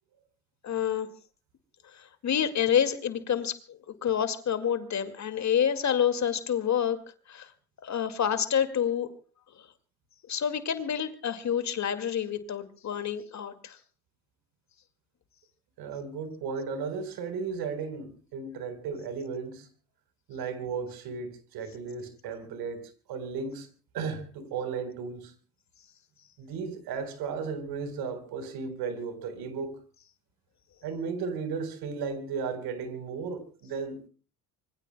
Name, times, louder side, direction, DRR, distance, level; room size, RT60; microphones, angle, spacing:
voice 1, 0.6-1.1 2.2-7.0 7.3-7.5 7.8-9.1 10.3-13.8, left 8 dB, 40° left, 2.1 m, -28 dB
voice 2, 15.8-19.7 20.3-23.7 23.9-25.3 26.4-29.8 30.8-34.1, right 5 dB, 60° right, 4.2 m, -35 dB
26.5 x 23.5 x 2.2 m
hypercardioid pair, 65°, 42 cm